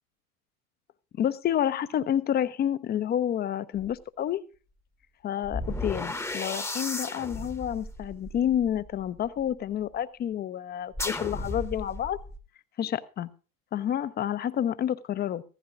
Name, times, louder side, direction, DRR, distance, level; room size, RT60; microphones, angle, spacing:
voice 1, 1.2-4.4 5.2-12.2 12.8-13.3 13.7-15.4, left 10 dB, 20° left, 16 dB, 0.6 m, -29 dB
sound 1, 3.8-3.9 5.4-9.5 10.9-12.4, left 2 dB, 5° left, 0.9 m, -35 dB
16.0 x 14.0 x 2.6 m, 0.35 s
figure-of-eight pair, 80°, 45 cm